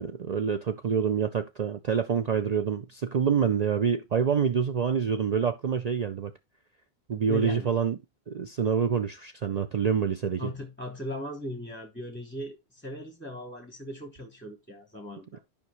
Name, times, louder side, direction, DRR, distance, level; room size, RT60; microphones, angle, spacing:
voice 1, 0.0-6.3 7.1-8.0 8.3-10.5, right 7 dB, 50° right, 0.5 m, -27 dB
voice 2, 7.2-7.7 10.4-15.4, left 1 dB, 10° left, 1.1 m, -38 dB
11.0 x 5.2 x 3.0 m
omnidirectional pair, 1.1 m